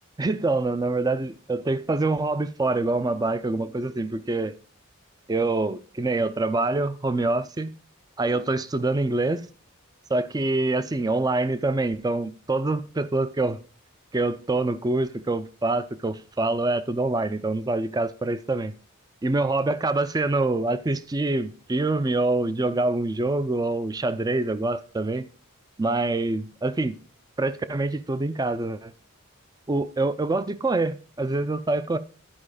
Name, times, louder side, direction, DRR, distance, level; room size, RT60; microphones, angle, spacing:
voice 1, 0.2-4.5 5.3-7.7 8.2-9.5 10.1-13.6 14.1-18.7 19.2-25.3 25.8-27.0 27.4-28.9 29.7-32.0, right 2 dB, 20° right, 0.4 m, -25 dB
11.0 x 4.9 x 4.9 m
head